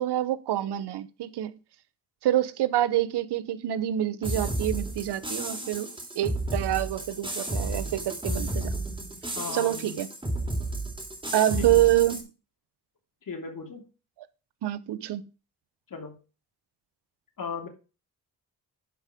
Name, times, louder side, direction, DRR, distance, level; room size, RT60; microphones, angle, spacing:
voice 1, 0.0-1.5 2.2-5.9 6.2-8.7 9.5-10.1 11.3-12.2 14.6-15.2, right 13 dB, 90° right, 0.8 m, -26 dB
sound 1, 4.2-12.2, right 2 dB, 15° right, 3.2 m, -32 dB
voice 2, 9.3-10.0 11.6-11.9 13.3-13.8 15.9-16.1 17.4-17.7, left 5 dB, 55° left, 3.0 m, -37 dB
11.0 x 4.9 x 5.0 m
cardioid pair, 85°, 39 cm